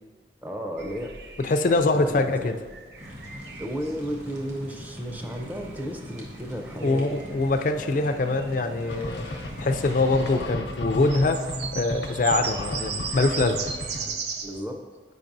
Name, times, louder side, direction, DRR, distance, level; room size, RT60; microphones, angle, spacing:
voice 1, 0.4-1.2 1.9-2.5 3.6-7.0 14.1-14.8, equal, 10° right, 2 dB, 0.6 m, -34 dB
sound 1, 0.8-14.6, right 5 dB, 65° right, 0.5 m, -38 dB
voice 2, 1.4-2.6 6.8-9.3 9.6-11.4 11.7-13.6, left 2 dB, 45° left, 7 dB, 0.4 m, -23 dB
sound 2, 3.0-10.4, equal, 40° right, 1.3 m, -42 dB
sound 3, 8.9-14.1, left 1 dB, 85° left, 0.8 m, -34 dB
8.6 x 5.2 x 2.6 m, 1.5 s
head